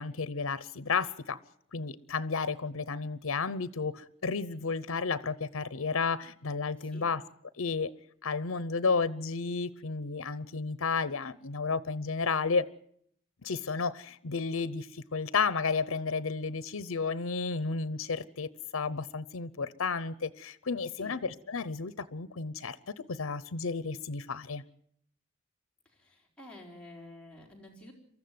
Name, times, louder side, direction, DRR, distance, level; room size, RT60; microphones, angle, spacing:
voice 1, 0.0-1.4 1.7-7.2 7.6-7.9 8.2-12.7 13.4-22.8 23.1-24.6, left 4 dB, 90° left, 0.8 m, -32 dB
voice 2, 25.9-27.9, left 1 dB, 5° left, 4.5 m, -50 dB
24.0 x 14.0 x 9.4 m
head